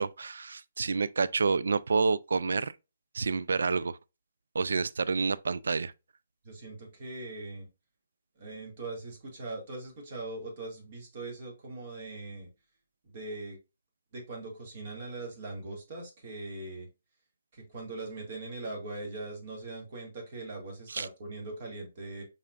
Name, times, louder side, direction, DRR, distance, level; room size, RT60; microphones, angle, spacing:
voice 1, 0.0-2.7 3.1-4.0 4.5-5.9 20.9-21.1, right 4 dB, 75° right, 0.3 m, -28 dB
voice 2, 6.4-7.7 8.4-12.5 13.0-13.6 14.1-16.9 17.5-22.2, right 2 dB, 45° right, 2.2 m, -41 dB
5.6 x 3.6 x 2.4 m
hypercardioid pair, 145°, 0 cm